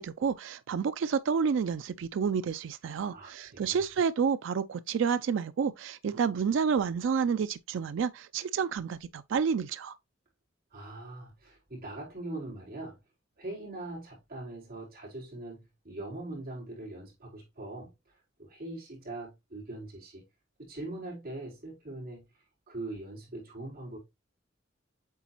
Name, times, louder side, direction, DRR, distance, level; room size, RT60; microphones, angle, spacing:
voice 1, 0.0-10.0, right 6 dB, 65° right, 0.3 m, -29 dB
voice 2, 3.1-3.8 10.7-13.0 13.4-20.2 20.6-22.2 22.7-24.0, right 2 dB, 50° right, 4.2 m, -42 dB
8.2 x 4.0 x 2.9 m
head